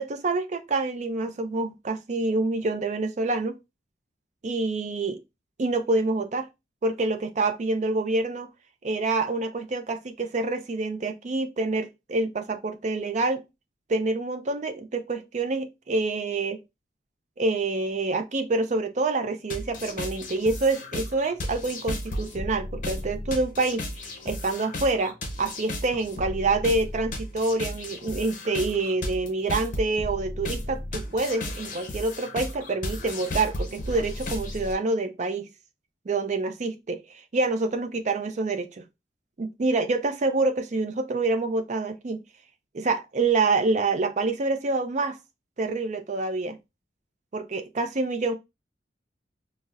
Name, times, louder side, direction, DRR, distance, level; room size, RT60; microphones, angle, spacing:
voice 1, 0.0-3.6 4.4-5.2 5.6-6.5 6.8-8.5 8.8-13.4 13.9-16.6 17.4-35.5 36.1-37.0 37.3-38.8 39.4-42.2 42.7-45.2 45.6-46.6 47.3-48.3, right 3 dB, 40° right, 0.4 m, -27 dB
Glitchy noise beat, 19.5-34.7, left 1 dB, 45° left, 0.6 m, -34 dB
4.0 x 2.0 x 2.4 m
head